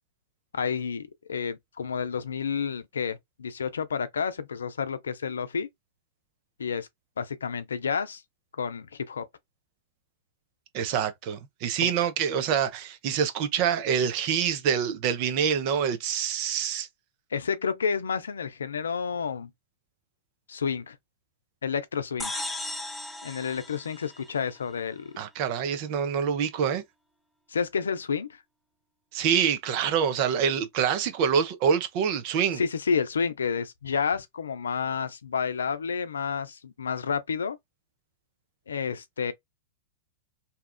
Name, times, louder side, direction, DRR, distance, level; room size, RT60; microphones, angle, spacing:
voice 1, 0.5-5.7 6.6-6.9 7.2-8.2 8.6-9.2 11.8-11.9 17.3-19.5 20.5-21.0 21.6-22.3 23.2-25.1 27.5-28.4 32.6-37.6 38.7-39.3, left 6 dB, 85° left, 0.5 m, -30 dB
voice 2, 10.7-16.9 25.2-26.8 29.1-32.6, right 7 dB, 50° right, 0.7 m, -26 dB
sound 1, 22.2-24.8, left 2 dB, 10° left, 0.5 m, -36 dB
2.8 x 2.4 x 2.3 m
hypercardioid pair, 110°, 0 cm